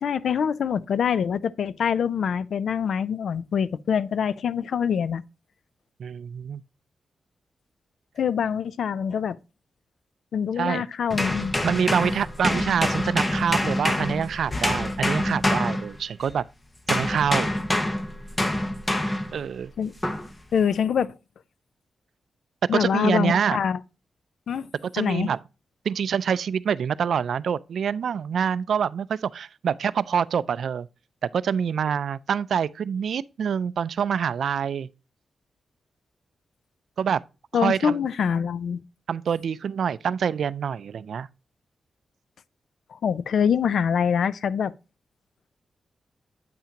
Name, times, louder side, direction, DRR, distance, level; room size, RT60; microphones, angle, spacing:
voice 1, 0.0-5.2 8.2-9.4 10.3-11.6 19.8-19.9 20.5-21.2 22.7-23.8 24.5-24.7 25.0-25.3 37.5-38.8 42.9-44.7, left 7 dB, 80° left, 0.4 m, -24 dB
voice 2, 6.0-6.6 10.6-10.8 11.6-16.4 16.9-17.5 19.0-19.7 22.7-23.6 24.8-25.4 25.9-30.9 31.2-34.9 37.0-37.2 37.5-38.0 39.1-41.3, right 7 dB, 75° right, 0.3 m, -26 dB
sound 1, 11.1-16.4 16.9-19.4 20.0-20.3, left 1 dB, 20° left, 0.8 m, -26 dB
8.6 x 5.8 x 2.8 m
wide cardioid pair, 130°, 0 cm